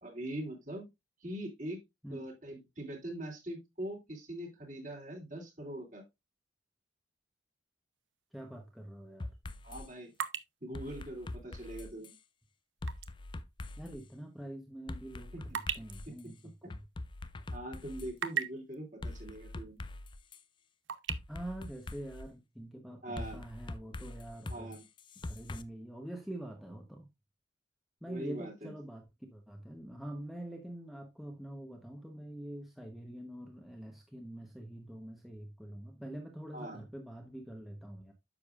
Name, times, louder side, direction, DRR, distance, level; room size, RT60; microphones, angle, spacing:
voice 1, 0.0-0.8 1.2-1.8 2.1-6.0 9.6-10.1 10.6-12.1 15.3-15.6 16.2-16.7 17.5-19.8 23.0-23.4 24.5-24.8 28.1-28.7 36.5-36.8, right 1 dB, 40° right, 2.9 m, -42 dB
sound 1, 8.0-8.2 8.8-13.2 13.5-13.7 14.3-17.4 17.8-18.8 19.8-19.9 20.2-21.1, right 8 dB, 75° right, 0.8 m, -40 dB
voice 2, 8.3-9.3 13.8-15.3 15.8-16.4 16.6-16.8 21.3-24.7 25.2-27.1 28.0-38.1, right 1 dB, ahead, 1.0 m, -45 dB
sound 2, 9.2-9.9 10.7-12.2 12.8-14.0 14.9-16.2 16.7-18.1 19.0-20.4 21.1-22.3 23.2-25.6, left 2 dB, 25° left, 0.4 m, -43 dB
9.7 x 7.0 x 2.4 m
head